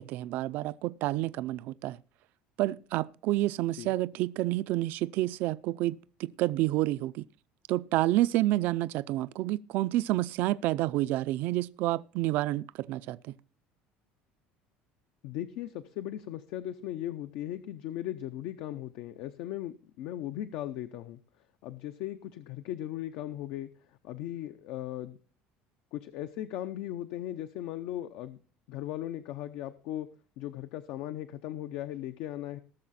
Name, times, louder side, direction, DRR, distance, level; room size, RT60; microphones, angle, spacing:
voice 1, 0.0-2.0 2.6-7.2 7.7-13.4, right 16 dB, 60° right, 0.4 m, -29 dB
voice 2, 15.2-21.2 21.6-23.7 24.0-25.2 25.9-28.4 28.7-30.1 30.4-32.6, left 12 dB, 65° left, 0.7 m, -37 dB
18.5 x 6.6 x 4.2 m
cardioid pair, 155°, 4 cm